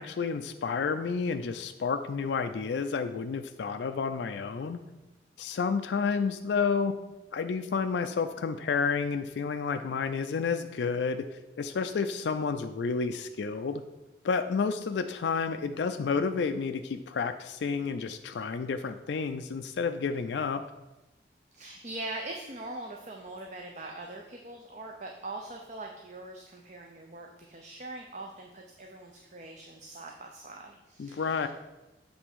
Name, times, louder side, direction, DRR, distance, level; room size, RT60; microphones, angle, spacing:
voice 1, 0.0-4.8 5.4-6.9 7.3-11.3 11.6-13.8 14.2-20.6 31.0-31.5, left 5 dB, 75° left, 8 dB, 0.4 m, -30 dB
voice 2, 21.5-31.5, right 2 dB, 40° right, 1 dB, 0.6 m, -42 dB
7.9 x 3.4 x 6.1 m, 1.0 s
head